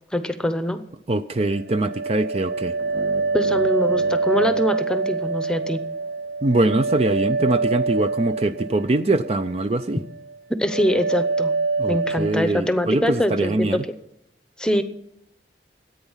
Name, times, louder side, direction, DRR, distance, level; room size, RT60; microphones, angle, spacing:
voice 1, 0.1-0.8 3.3-5.8 10.6-11.5 11.9-13.8 14.6-14.8, equal, 5° left, 10 dB, 0.8 m, -23 dB
voice 2, 1.1-2.7 6.4-10.0 11.8-13.8, right 2 dB, 35° right, 10 dB, 0.4 m, -23 dB
sound 1, 1.4-9.5 9.8-10.4 10.7-12.4, right 3 dB, 90° right, 0.5 m, -25 dB
sound 2, 2.8-5.9, right 1 dB, 60° right, 1.3 m, -39 dB
14.0 x 9.0 x 7.3 m, 0.80 s
head